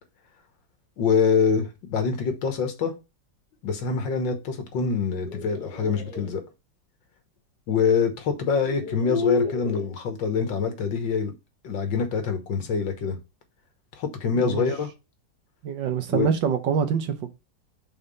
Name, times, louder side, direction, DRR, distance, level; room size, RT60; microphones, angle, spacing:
voice 1, 1.0-2.9 3.6-6.4 7.7-11.3 11.6-13.2 13.9-14.9 16.1-16.3, left 5 dB, 80° left, 2.0 m, -25 dB
sound 1, 5.0-6.3 7.8-7.9 8.5-9.9, left 4 dB, 60° left, 2.6 m, -30 dB
voice 2, 15.6-17.3, right 7 dB, 80° right, 1.7 m, -25 dB
5.7 x 4.0 x 5.4 m
omnidirectional pair, 2.0 m